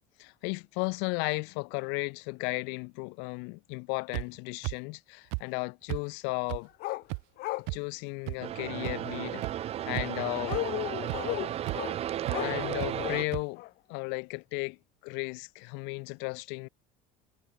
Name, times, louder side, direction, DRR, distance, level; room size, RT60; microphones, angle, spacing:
voice 1, 0.2-6.7 7.7-9.4 9.9-10.6 12.4-13.6 13.9-14.8 15.0-16.7, left 34 dB, 75° left, 1.5 m, -34 dB
sound 1, 4.1-4.2 4.6-4.7 5.3-5.4 5.9-6.0 6.5-6.6 7.1-7.2 7.7-7.8 8.3-8.4 8.8-8.9 9.4-9.5 9.9-10.2 10.5-10.6 11.1-11.2 11.7-11.8 12.3-12.4 12.8-12.9 13.3-13.4, right 36 dB, 80° right, 1.3 m, -33 dB
sound 2, 6.8-7.0 7.4-7.7 10.4-11.9 12.3-13.2 13.6-13.7, left 19 dB, 60° left, 2.5 m, -34 dB
sound 3, 8.4-13.3, right 11 dB, 35° right, 1.0 m, -34 dB
cardioid pair, 160°, 18 cm